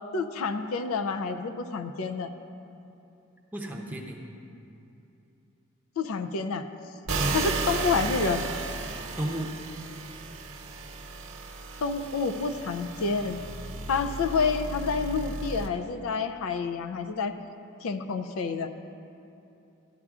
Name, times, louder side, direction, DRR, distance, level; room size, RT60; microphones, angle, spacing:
voice 1, 0.1-2.3 6.0-6.7 7.3-8.5 11.8-13.4 13.9-17.3 17.8-18.7, left 4 dB, 90° left, 9 dB, 0.4 m, -28 dB
voice 2, 3.5-4.2 7.2-7.4 9.2-9.5, right 1 dB, 10° right, -1 dB, 0.6 m, -32 dB
sound 1, 7.1-15.7, right 3 dB, 85° right, 0.9 m, -34 dB
13.0 x 9.8 x 2.4 m, 2.8 s
head